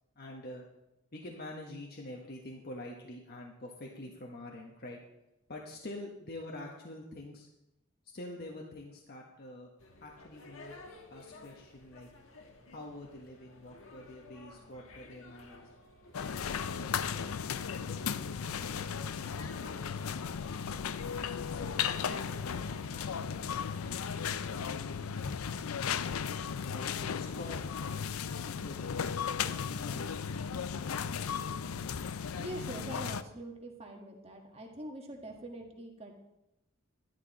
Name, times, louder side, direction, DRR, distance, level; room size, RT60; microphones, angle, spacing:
voice 1, 0.2-0.7 1.1-5.0 5.5-7.5 8.0-9.7 10.0-10.7 11.1-12.1 12.7-15.7 16.4-17.4 17.8-18.9 19.7-20.8 21.5-23.7 24.2-26.1 26.6-28.1 28.4-29.0 29.4-31.4, left 1 dB, 45° left, 0 dB, 1.2 m, -47 dB
sound 1, 9.8-24.5, left 2 dB, 70° left, 1.4 m, -54 dB
sound 2, 16.1-33.2, left 7 dB, 85° left, 0.5 m, -36 dB
voice 2, 32.4-36.1, right 1 dB, 30° right, 1 dB, 1.6 m, -44 dB
12.5 x 10.5 x 4.2 m, 0.90 s
head